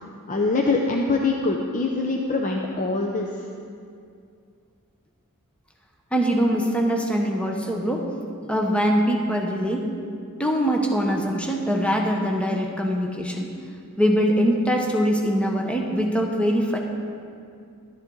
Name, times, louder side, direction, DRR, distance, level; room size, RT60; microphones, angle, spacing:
voice 1, 0.3-3.3, left 3 dB, 35° left, 1 dB, 0.6 m, -23 dB
voice 2, 6.1-8.1 8.5-9.9 10.4-13.5 14.0-16.8, equal, 5° left, 1 dB, 0.9 m, -23 dB
12.0 x 10.5 x 3.8 m, 2.4 s
head